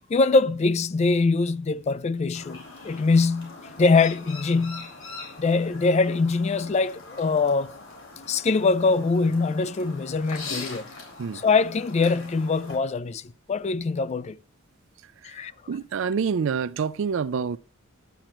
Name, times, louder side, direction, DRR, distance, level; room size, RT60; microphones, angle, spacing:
voice 1, 0.1-4.9 5.4-7.7 8.3-10.8 11.3-14.4 15.2-15.5, left 4 dB, 30° left, 0.3 m, -23 dB
Chirp tweet, 2.3-12.8, left 3 dB, 80° left, 4.9 m, -42 dB
voice 2, 15.7-17.6, right 6 dB, 65° right, 0.4 m, -27 dB
11.5 x 8.8 x 3.0 m
head